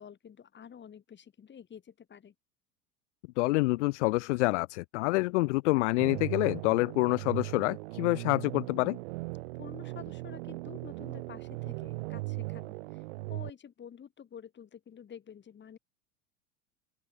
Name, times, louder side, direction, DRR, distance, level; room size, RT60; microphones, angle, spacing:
voice 1, 0.0-2.3 9.6-13.0 13.3-15.8, left 8 dB, 25° left, 3.2 m, -49 dB
voice 2, 3.4-9.0, left 23 dB, 55° left, 0.5 m, -27 dB
sound 1, 6.0-13.5, right 22 dB, 55° right, 0.5 m, -38 dB
open air
figure-of-eight pair, 85°, 42 cm